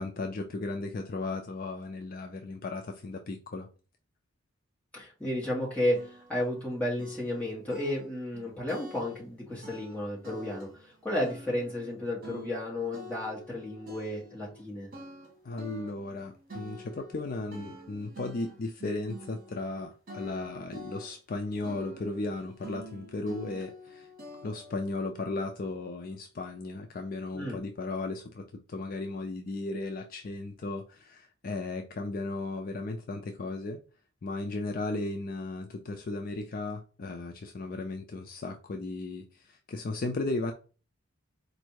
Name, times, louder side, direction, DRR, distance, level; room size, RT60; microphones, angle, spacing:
voice 1, 0.0-3.7 15.4-24.1 24.4-33.8 34.2-40.5, left 2 dB, 45° left, 0.4 m, -35 dB
voice 2, 4.9-14.9 27.3-27.6, left 1 dB, 5° left, 1.6 m, -33 dB
sound 1, 5.3-5.4 5.9-6.7 7.0-9.3 9.6-11.0 11.2-14.6 14.9-19.8 20.1-21.4 21.6-24.9, equal, 45° right, 1.5 m, -47 dB
4.2 x 2.6 x 4.6 m
head